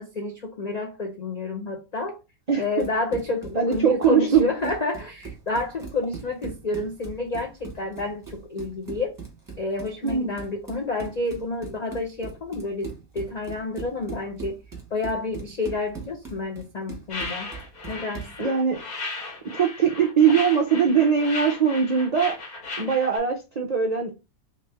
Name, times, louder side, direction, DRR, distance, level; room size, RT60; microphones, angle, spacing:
voice 1, 0.0-2.2 2.6-9.2 9.6-14.6 14.9-17.5 17.9-18.5, left 3 dB, 70° left, 0.4 m, -29 dB
voice 2, 2.5-2.9 3.5-4.5 10.0-10.3 18.4-18.8 19.5-22.4 22.8-24.1, right 7 dB, 70° right, 0.3 m, -21 dB
Run, 2.6-18.4, right 5 dB, 15° right, 1.0 m, -40 dB
sound 1, 17.1-23.2, left 3 dB, 90° left, 1.8 m, -36 dB
3.3 x 3.1 x 3.3 m
omnidirectional pair, 1.5 m